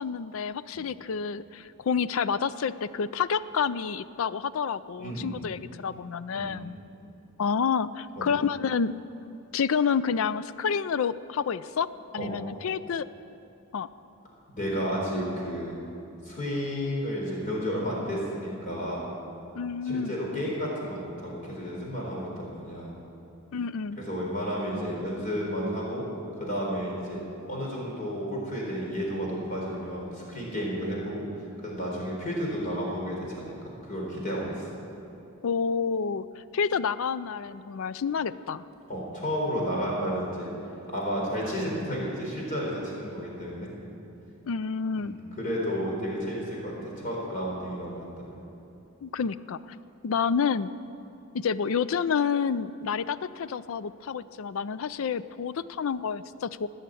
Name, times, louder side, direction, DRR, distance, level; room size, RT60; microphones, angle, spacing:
voice 1, 0.0-6.8 7.4-8.9 9.5-11.9 12.1-13.1 13.7-13.9 19.5-20.2 23.5-24.0 35.4-38.6 44.4-45.1 49.0-49.8 50.0-50.7 51.3-56.7, left 6 dB, 65° left, 16 dB, 0.4 m, -29 dB
voice 2, 5.0-5.4 6.3-6.5 8.2-8.3 12.2-12.3 14.5-15.7 16.2-19.1 19.8-22.9 24.1-26.0 26.3-27.2 27.5-31.3 31.6-33.5 33.9-34.6 38.9-40.5 40.9-43.7 45.0-48.2, equal, 35° left, -3 dB, 4.0 m, -32 dB
19.0 x 6.6 x 9.0 m, 2.8 s
head